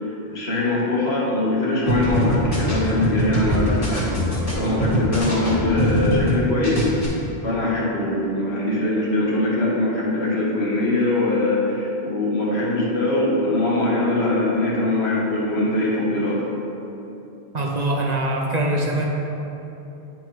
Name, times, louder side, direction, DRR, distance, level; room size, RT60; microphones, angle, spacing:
voice 1, 0.3-4.1 4.5-6.8 7.4-16.4, left 2 dB, 80° left, -5 dB, 1.6 m, -22 dB
sound 1, 1.9-6.4 6.6-7.1, equal, 35° left, 1.5 m, -23 dB
voice 2, 17.5-19.0, right 1 dB, 45° right, -2 dB, 0.7 m, -23 dB
9.2 x 4.6 x 3.1 m, 3.0 s
omnidirectional pair, 1.1 m